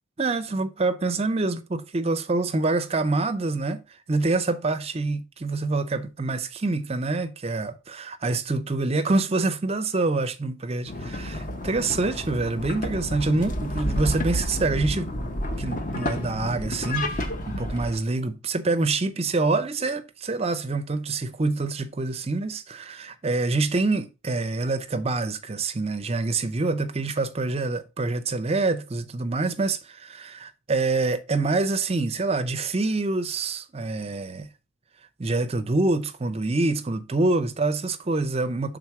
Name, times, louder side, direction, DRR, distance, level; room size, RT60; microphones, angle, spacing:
voice 1, 0.2-3.8 4.1-15.1 15.6-34.5 35.2-38.8, right 3 dB, 30° right, 0.5 m, -26 dB
sound 1, 10.9-18.0, left 1 dB, 40° left, 0.8 m, -30 dB
5.7 x 3.8 x 4.7 m
head